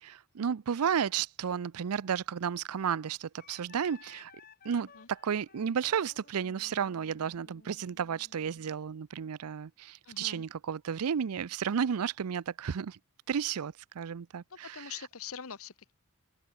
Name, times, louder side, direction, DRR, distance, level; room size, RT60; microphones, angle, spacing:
voice 1, 0.0-4.3 4.6-13.0 13.3-14.9, right 7 dB, 85° right, 0.5 m, -33 dB
Wind instrument woodwind instrument, 3.4-8.8, left 5 dB, 40° left, 2.1 m, -57 dB
voice 2, 10.0-10.4 14.6-15.9, left 7 dB, 70° left, 1.1 m, -43 dB
open air
head